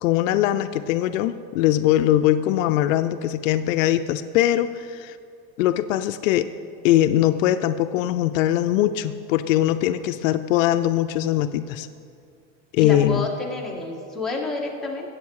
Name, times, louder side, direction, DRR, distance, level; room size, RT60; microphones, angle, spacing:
voice 1, 0.0-5.2 5.6-6.5 6.8-11.9 12.7-13.3, left 12 dB, 75° left, 11 dB, 0.6 m, -21 dB
voice 2, 12.8-15.1, left 2 dB, ahead, -4 dB, 1.8 m, -29 dB
14.5 x 8.4 x 4.7 m, 2.3 s
supercardioid pair, 130°, 40 cm